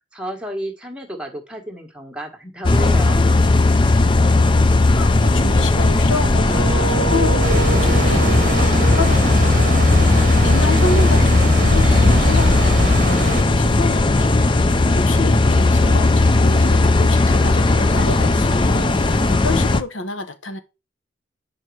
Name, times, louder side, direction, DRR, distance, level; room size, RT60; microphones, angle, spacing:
voice 1, 0.1-3.3, equal, 5° right, 1.5 m, -31 dB
sound 1, 2.6-19.8, left 2 dB, 25° left, 0.4 m, -16 dB
voice 2, 3.9-20.6, left 2 dB, 85° left, 1.1 m, -29 dB
sound 2, 6.4-11.2, right 6 dB, 80° right, 0.4 m, -29 dB
sound 3, 7.4-13.4, right 2 dB, 45° right, 1.0 m, -24 dB
7.7 x 5.2 x 4.7 m
head